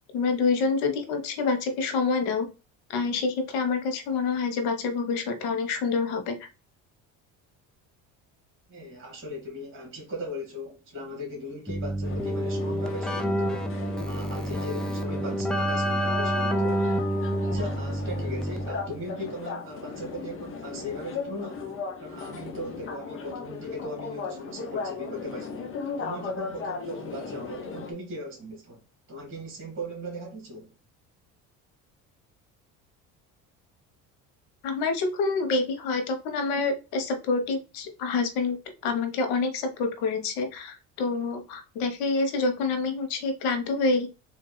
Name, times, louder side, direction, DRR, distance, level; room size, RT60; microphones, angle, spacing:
voice 1, 0.1-2.5 2.9-6.4 34.6-38.6 38.8-44.1, left 4 dB, 80° left, 1.1 m, -27 dB
voice 2, 8.7-13.7 14.0-16.8 17.4-21.6 22.0-28.8 29.1-30.7, equal, 35° right, 2.0 m, -38 dB
Keyboard (musical), 11.7-19.0, right 1 dB, ahead, 0.4 m, -28 dB
sound 1, 12.0-27.9, left 5 dB, 35° left, 0.9 m, -37 dB
3.6 x 2.7 x 3.9 m
cardioid pair, 110°, 35 cm